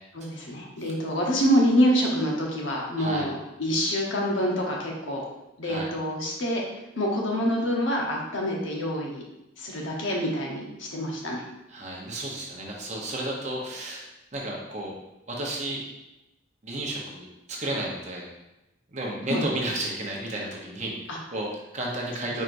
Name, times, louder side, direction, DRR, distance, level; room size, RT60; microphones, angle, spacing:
voice 1, 0.1-5.2 5.6-6.6 7.0-9.2 9.6-11.5 19.3-19.4 21.1-21.2, equal, 70° left, -2 dB, 1.0 m, -26 dB
voice 2, 11.7-14.9 15.3-15.8 16.6-18.3 18.9-22.4, right 1 dB, 35° right, -2 dB, 0.9 m, -33 dB
4.5 x 4.5 x 2.6 m, 0.93 s
head